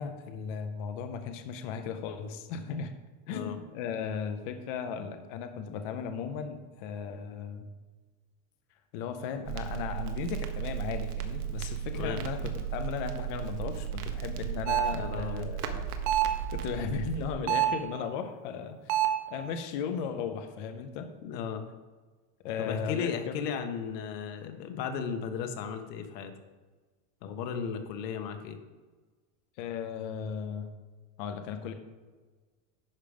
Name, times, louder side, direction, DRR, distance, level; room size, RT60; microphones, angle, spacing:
voice 1, 0.0-2.9 3.3-7.7 8.9-15.9 16.5-21.1 22.4-23.5 29.6-30.7 31.2-31.7, left 6 dB, 35° left, 7 dB, 0.5 m, -36 dB
voice 2, 3.3-3.6 11.9-12.2 14.9-15.5 21.2-21.6 22.6-26.3 27.2-28.6, left 6 dB, 90° left, 6 dB, 1.5 m, -35 dB
Crackle, 9.5-17.3, right 9 dB, 65° right, 1.2 m, -35 dB
sound 1, 14.7-15.0 16.1-16.4 17.5-17.9 18.9-19.3, right 11 dB, 90° right, 1.2 m, -26 dB
10.5 x 5.1 x 5.1 m, 1.3 s
supercardioid pair, 180°, 48 cm